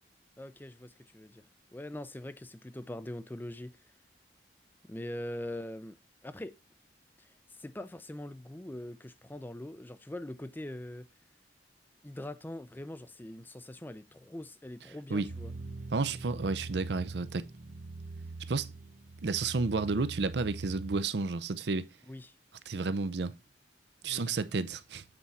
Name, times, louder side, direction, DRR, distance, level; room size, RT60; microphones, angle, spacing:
voice 1, 0.4-1.4 1.7-3.8 4.9-6.0 6.2-6.6 7.6-11.1 12.0-15.5 22.1-22.3 24.0-24.3, left 1 dB, 10° left, 0.4 m, -42 dB
sound 1, 15.3-21.0, right 3 dB, 45° right, 0.8 m, -43 dB
voice 2, 15.9-17.5 18.5-18.7 19.2-21.9 22.7-23.3 24.0-25.0, right 4 dB, 75° right, 0.6 m, -31 dB
7.9 x 4.6 x 4.1 m
head